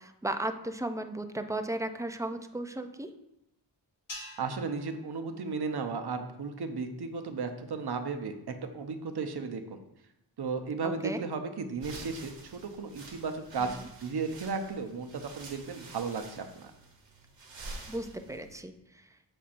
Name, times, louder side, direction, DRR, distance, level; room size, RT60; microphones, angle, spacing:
voice 1, 0.0-3.1 10.8-11.2 13.6-13.7 17.9-19.1, right 1 dB, 10° right, 8 dB, 0.4 m, -35 dB
sound 1, 4.1-6.5, left 1 dB, 80° left, 1.6 m, -49 dB
voice 2, 4.4-9.8 10.4-16.7, right 4 dB, 60° right, 7 dB, 0.7 m, -35 dB
sound 2, 11.8-18.6, right 2 dB, 85° right, 1.1 m, -48 dB
7.1 x 5.3 x 2.5 m, 0.85 s
wide cardioid pair, 60°, 44 cm